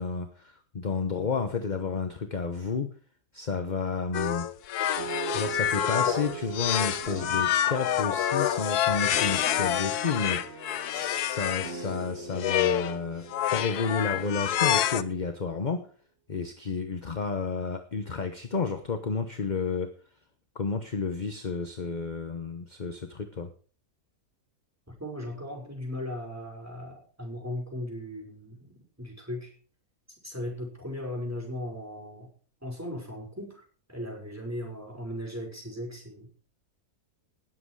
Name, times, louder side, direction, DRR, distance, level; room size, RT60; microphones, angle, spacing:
voice 1, 0.0-2.9 3.3-4.5 5.3-15.9 16.3-19.9 20.5-23.5, left 4 dB, 35° left, 7 dB, 1.0 m, -31 dB
sound 1, 4.1-11.7 12.3-13.0 13.3-15.0, left 11 dB, 80° left, 1.3 m, -27 dB
sound 2, 5.0-14.7, right 4 dB, 45° right, 2.0 m, -41 dB
voice 2, 24.9-29.5 30.2-32.3 32.6-36.3, left 1 dB, 10° right, 0 dB, 5.5 m, -37 dB
19.0 x 8.0 x 4.8 m, 0.42 s
omnidirectional pair, 1.6 m